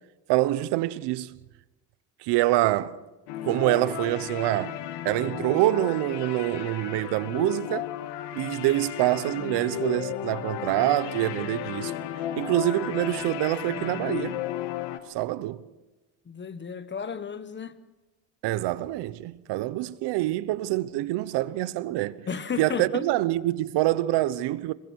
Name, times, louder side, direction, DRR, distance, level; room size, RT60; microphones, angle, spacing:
voice 1, 0.3-1.3 2.2-3.0 3.4-4.8 5.0-7.9 8.3-11.9 12.4-14.4 15.1-15.7 18.4-22.3 22.6-24.7, right 16 dB, 70° right, 1.0 m, -26 dB
sound 1, 3.3-15.0, left 11 dB, 75° left, 1.7 m, -34 dB
voice 2, 16.2-17.8 22.3-23.1, left 6 dB, 25° left, 1.3 m, -33 dB
27.0 x 22.5 x 4.7 m
cardioid pair, 110°, 42 cm